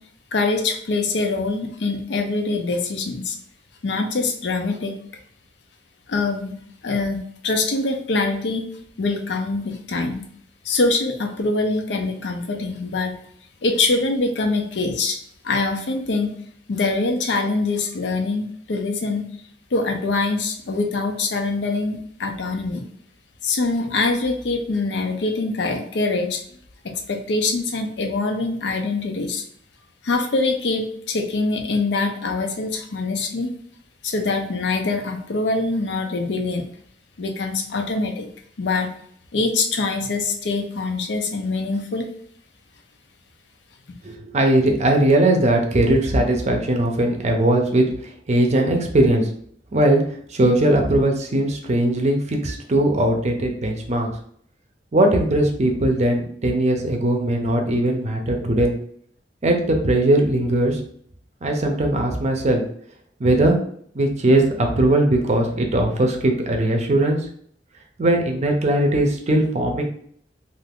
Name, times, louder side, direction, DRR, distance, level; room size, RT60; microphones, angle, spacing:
voice 1, 0.3-3.4 3.8-5.0 6.1-8.7 9.0-10.3 10.6-13.2 13.6-15.2 15.4-16.3 16.7-19.2 19.7-22.9 23.4-26.4 26.8-29.4 30.0-33.5 34.0-36.6 37.2-38.3 38.6-38.9 39.3-42.1, left 3 dB, 75° left, 5 dB, 0.5 m, -24 dB
voice 2, 44.0-49.3 49.7-50.0 50.3-54.1 54.9-58.7 59.4-60.8 61.4-62.6 63.2-63.6 63.9-67.2 68.0-69.8, right 1 dB, 40° right, 3 dB, 0.5 m, -19 dB
2.5 x 2.4 x 3.4 m, 0.62 s
head